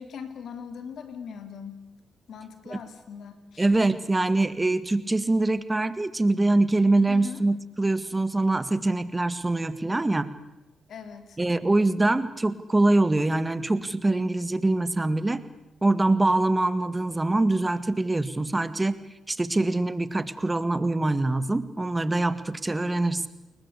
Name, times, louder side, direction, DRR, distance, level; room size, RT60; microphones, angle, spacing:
voice 1, 0.0-1.8 2.3-3.7 7.1-7.4 10.9-11.4, left 6 dB, 70° left, 9 dB, 3.4 m, -40 dB
voice 2, 3.6-10.3 11.4-15.4 15.8-19.0 19.3-23.3, right 2 dB, 25° right, 13 dB, 2.0 m, -24 dB
29.5 x 22.0 x 8.4 m, 0.95 s
supercardioid pair, 50°, 0 cm